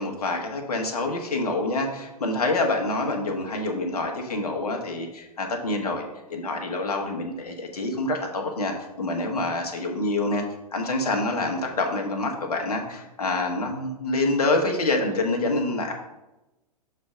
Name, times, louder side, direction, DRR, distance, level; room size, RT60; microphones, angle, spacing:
voice 1, 0.0-6.0 6.3-10.4 10.7-15.9, left 2 dB, 70° left, 2 dB, 1.3 m, -26 dB
6.6 x 3.3 x 5.1 m, 0.98 s
figure-of-eight pair, 110°, 20 cm